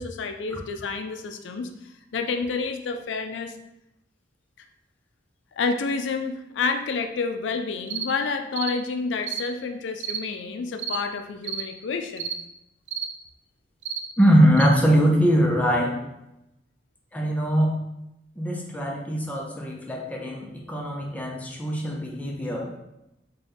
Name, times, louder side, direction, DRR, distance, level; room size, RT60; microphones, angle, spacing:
voice 1, 0.0-1.7 2.1-3.6 5.5-12.3, left 4 dB, 85° left, 6 dB, 0.4 m, -29 dB
sound 1, 7.9-8.1 8.5-8.8 9.2-9.4 10.0-10.2 10.8-11.0 11.4-11.7 12.2-12.4 12.9-13.1 13.8-14.0 14.6-14.7, right 8 dB, 90° right, 0.4 m, -31 dB
voice 2, 14.2-16.0 17.1-17.8 18.4-22.7, equal, 10° left, -1 dB, 0.6 m, -22 dB
3.9 x 2.3 x 3.4 m, 0.87 s
head